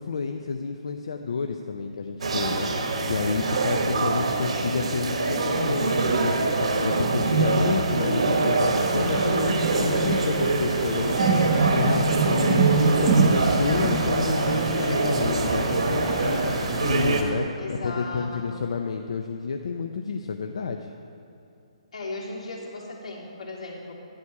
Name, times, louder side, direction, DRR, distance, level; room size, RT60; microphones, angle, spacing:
voice 1, 0.0-20.9, left 5 dB, 60° left, 5 dB, 0.5 m, -30 dB
sound 1, 2.2-17.2, right 3 dB, 65° right, 1.2 m, -25 dB
sound 2, 7.1-16.3, right 5 dB, 20° right, 0.6 m, -27 dB
sound 3, 8.6-17.3, equal, 10° left, 1.1 m, -37 dB
voice 2, 17.6-18.6 21.9-23.9, left 2 dB, 80° left, -3 dB, 2.8 m, -36 dB
11.5 x 9.6 x 4.7 m, 2.6 s
hypercardioid pair, 175°, 4 cm